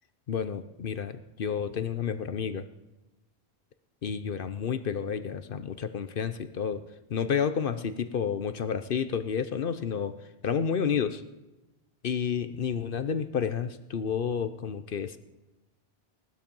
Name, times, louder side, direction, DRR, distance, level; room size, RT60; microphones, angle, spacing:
voice 1, 0.3-2.6 4.0-6.8 7.1-10.2 10.4-11.2 12.0-15.2, left 7 dB, 60° left, 11 dB, 0.9 m, -30 dB
18.0 x 12.5 x 5.3 m, 1.0 s
omnidirectional pair, 1.0 m